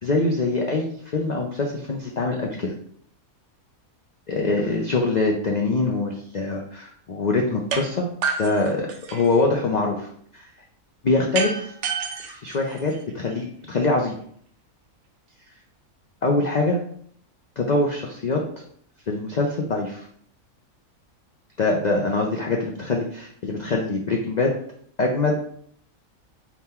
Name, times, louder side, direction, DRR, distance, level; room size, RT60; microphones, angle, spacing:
voice 1, 0.0-2.7 4.3-8.1 8.4-10.5 11.0-11.7 12.2-14.1 16.2-16.8 17.6-18.4 19.1-20.1 21.6-24.5 25.0-25.3, left 3 dB, 85° left, 0 dB, 0.3 m, -24 dB
sound 1, 7.7-7.8 8.2-9.4 11.3-13.3, right 5 dB, 65° right, 0.8 m, -29 dB
3.6 x 2.9 x 4.3 m, 0.63 s
omnidirectional pair, 1.5 m